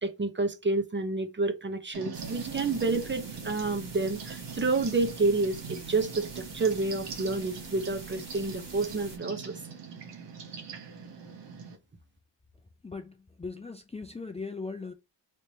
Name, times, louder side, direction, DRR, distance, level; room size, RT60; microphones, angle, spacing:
voice 1, 0.0-9.6, right 3 dB, 25° right, 0.7 m, -29 dB
sound 1, 1.9-11.8, right 6 dB, 70° right, 1.0 m, -42 dB
sound 2, 2.1-9.2, right 2 dB, 50° right, 2.0 m, -47 dB
voice 2, 12.8-14.9, left 4 dB, 15° left, 0.5 m, -39 dB
3.4 x 2.9 x 2.7 m
cardioid pair, 55°, 44 cm